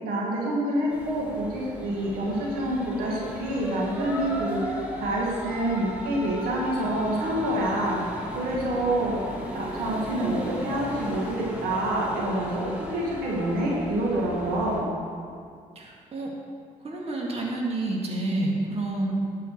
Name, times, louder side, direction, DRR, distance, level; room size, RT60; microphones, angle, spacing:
voice 1, 0.0-4.7 5.0-8.0 8.4-9.1 9.5-14.9, right 1 dB, 90° right, -4 dB, 2.0 m, -27 dB
sound 1, 0.9-14.8, equal, 10° right, 2.7 m, -36 dB
voice 2, 15.8-16.3 16.8-19.3, right 2 dB, 45° right, -2 dB, 2.2 m, -28 dB
11.5 x 5.4 x 6.7 m, 2.3 s
cardioid pair, 75°, 15 cm